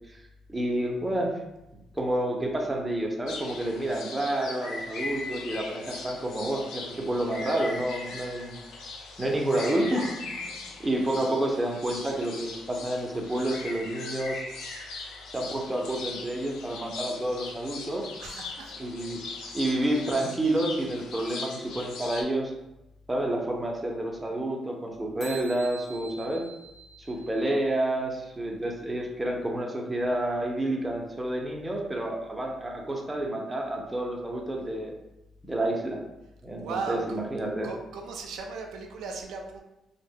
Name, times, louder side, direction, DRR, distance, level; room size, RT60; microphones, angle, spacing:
voice 1, 0.5-1.3 1.9-8.6 9.2-10.5 10.8-14.5 15.3-18.1 18.8-19.2 19.5-22.5 23.1-26.4 27.0-34.9 35.4-36.0 36.4-37.7, right 1 dB, 15° right, 0 dB, 0.5 m, -29 dB
sound 1, 3.3-22.2, left 3 dB, 85° left, 0.4 m, -40 dB
voice 2, 18.2-18.7 36.6-37.2 37.6-39.6, right 4 dB, 80° right, 2 dB, 0.3 m, -36 dB
sound 2, 25.2-27.8, right 5 dB, 55° left, 1.0 m, -46 dB
2.0 x 2.0 x 3.5 m, 0.95 s
cardioid pair, 90°, 0 cm